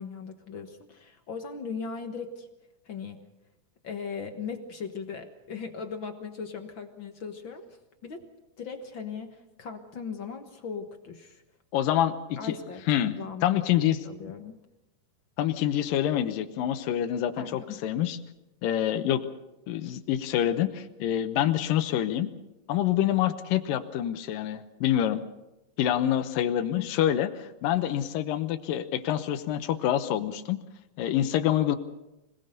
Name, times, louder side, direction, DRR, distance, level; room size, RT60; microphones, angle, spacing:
voice 1, 0.0-2.5 2.8-3.2 3.8-7.8 8.0-8.2 8.6-11.4 12.4-12.8 13.2-13.7 14.0-14.6 17.4-17.8 26.8-26.9, left 5 dB, 50° left, 6 dB, 1.6 m, -38 dB
voice 2, 11.7-12.5 12.9-13.2 13.4-14.0 15.4-18.2 18.6-19.3 19.7-22.3 22.7-25.2 25.8-30.6 31.0-31.8, left 11 dB, 85° left, 9 dB, 2.6 m, -26 dB
25.5 x 18.5 x 6.7 m, 0.97 s
omnidirectional pair, 3.8 m